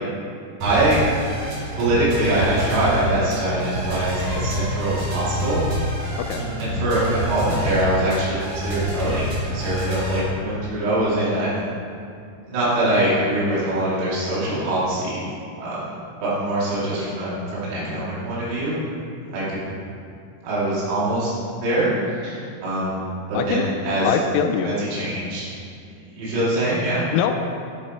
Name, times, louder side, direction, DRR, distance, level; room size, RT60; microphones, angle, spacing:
sound 1, 0.6-10.2, equal, 50° right, 2.5 m, -27 dB
voice 1, 0.6-1.0 1.7-5.8 6.4-11.6 12.5-15.2 15.6-15.9 16.2-18.8 19.3-19.6 20.4-21.3 21.6-23.0 23.3-24.2 24.6-25.5 26.1-27.1, right 1 dB, 80° right, -9 dB, 5.3 m, -23 dB
voice 2, 24.1-24.7 27.1-27.3, left 8 dB, 85° left, 5 dB, 3.2 m, -22 dB
13.0 x 9.1 x 3.0 m, 2.4 s
omnidirectional pair, 5.9 m